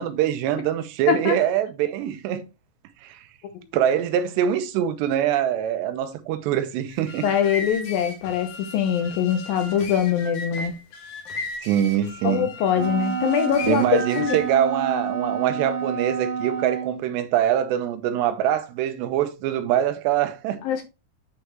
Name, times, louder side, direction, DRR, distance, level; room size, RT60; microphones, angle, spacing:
voice 1, 0.0-2.4 3.0-3.2 3.7-7.3 11.6-12.5 13.7-20.6, right 10 dB, 90° right, 3.1 m, -24 dB
sound 1, 6.9-14.5, left 3 dB, 55° left, 1.9 m, -36 dB
voice 2, 7.2-10.7 12.2-13.8 14.2-14.4 20.6-20.9, left 9 dB, 75° left, 2.2 m, -23 dB
Wind instrument woodwind instrument, 12.7-17.0, right 7 dB, 55° right, 1.5 m, -29 dB
9.5 x 5.0 x 3.0 m
omnidirectional pair, 4.8 m